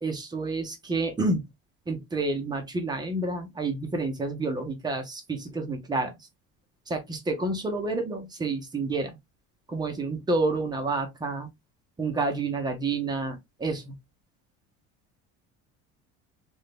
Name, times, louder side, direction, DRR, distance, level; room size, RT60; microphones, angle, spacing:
voice 1, 0.0-1.5 1.9-6.1 6.9-9.2 9.7-11.5 12.0-13.9, right 3 dB, 15° right, 0.7 m, -29 dB
3.3 x 2.7 x 3.3 m
cardioid pair, 160°, 30 cm